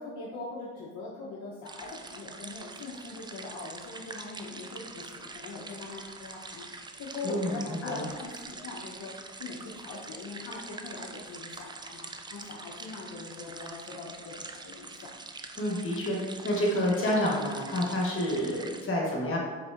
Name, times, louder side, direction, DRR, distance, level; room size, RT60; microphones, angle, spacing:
voice 1, 0.0-9.1 9.4-15.2, left 3 dB, 60° left, -5 dB, 0.9 m, -42 dB
sound 1, 1.7-18.8, right 3 dB, 15° right, 0.3 m, -44 dB
voice 2, 7.2-8.1 15.6-16.2 16.4-19.4, left 1 dB, 40° left, -3 dB, 1.4 m, -28 dB
4.8 x 4.3 x 2.5 m, 1.4 s
supercardioid pair, 70°, 31 cm